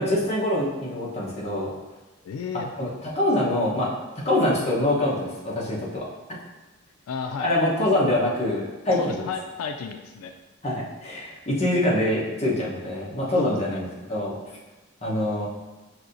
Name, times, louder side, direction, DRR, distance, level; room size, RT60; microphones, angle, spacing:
voice 1, 0.0-1.7 2.8-6.1 7.4-9.3 10.6-14.4 15.0-15.5, left 1 dB, 30° left, -6 dB, 0.9 m, -25 dB
voice 2, 2.2-2.7 7.1-7.6 9.0-10.3 13.4-13.8, left 5 dB, 85° left, 6 dB, 0.3 m, -33 dB
6.0 x 2.7 x 2.6 m, 1.2 s
head